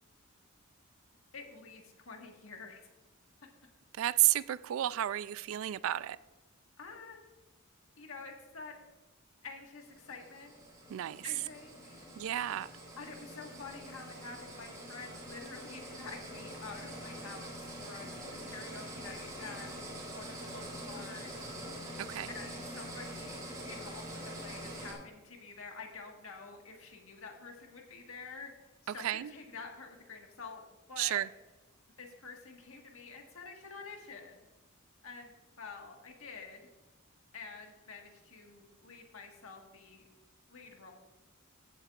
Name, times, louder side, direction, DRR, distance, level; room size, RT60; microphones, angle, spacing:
voice 1, 1.3-2.8 6.8-7.2 8.0-8.8 9.4-10.6 11.2-12.1 13.0-18.1 18.4-21.4 22.3-23.4 23.6-28.5 28.8-30.6 30.9-31.2 32.0-34.5 35.0-36.6 37.3-40.0 40.5-40.9, left 4 dB, 70° left, 2 dB, 1.5 m, -48 dB
voice 2, 3.9-6.2 10.9-11.3 12.2-12.7 22.0-22.3 28.9-29.3 31.0-31.3, right 13 dB, 65° right, 17 dB, 0.3 m, -32 dB
sound 1, 9.8-24.9, right 1 dB, 15° right, 2.7 m, -45 dB
14.5 x 8.0 x 2.4 m, 1.1 s
head